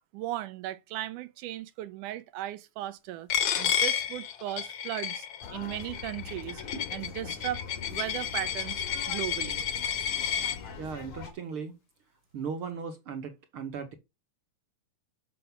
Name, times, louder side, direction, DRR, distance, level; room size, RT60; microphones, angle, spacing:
voice 1, 0.1-3.3 3.6-6.6 6.9-7.6 7.9-9.6, right 14 dB, 85° right, 2.3 m, -37 dB
Coin (dropping), 3.3-10.6, left 8 dB, 65° left, 1.6 m, -31 dB
sound 1, 5.4-11.3, left 5 dB, 85° left, 3.4 m, -42 dB
voice 2, 10.8-11.8 12.3-13.9, right 6 dB, 60° right, 1.5 m, -37 dB
7.3 x 6.5 x 5.9 m
omnidirectional pair, 3.5 m